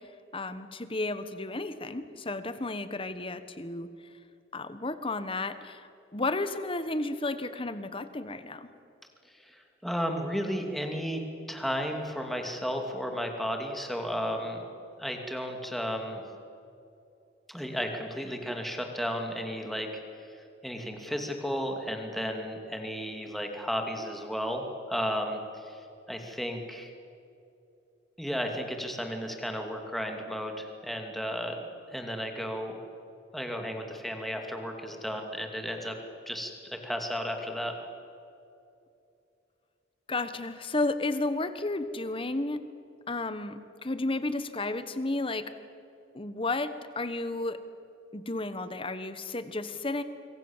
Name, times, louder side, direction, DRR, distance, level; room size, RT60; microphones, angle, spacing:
voice 1, 0.3-3.9 4.5-8.7 40.1-42.6 43.1-45.5 46.1-47.6 48.1-50.0, left 2 dB, 30° left, 11 dB, 1.3 m, -32 dB
voice 2, 9.4-11.2 11.5-14.6 15.0-16.2 17.5-19.9 20.3-25.8 26.1-26.9 28.2-31.6 31.9-32.7 33.3-35.9 36.3-37.7, equal, ahead, 3 dB, 2.7 m, -33 dB
26.5 x 23.5 x 7.5 m, 2.6 s
head